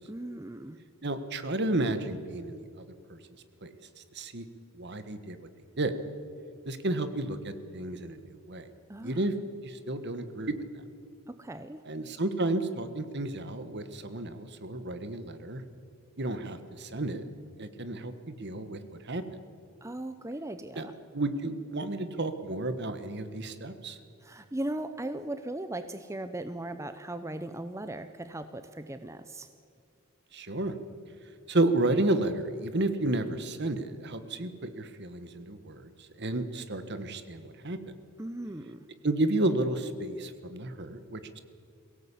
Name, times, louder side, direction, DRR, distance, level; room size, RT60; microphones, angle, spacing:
voice 1, 0.1-0.8 8.9-9.2 11.4-11.8 19.8-20.9 24.2-29.5 38.2-38.8, right 1 dB, 15° right, 10 dB, 0.7 m, -38 dB
voice 2, 1.0-2.8 3.1-3.2 3.6-3.7 4.1-4.4 4.7-5.4 5.8-5.9 6.6-8.7 9.0-9.3 9.6-10.6 11.9-15.6 16.2-17.2 17.6-18.8 19.0-19.2 20.7-24.0 30.3-30.7 31.5-35.9 36.2-37.8 39.0-41.4, right 2 dB, 50° right, 10 dB, 1.5 m, -31 dB
22.5 x 17.5 x 8.5 m, 2.3 s
head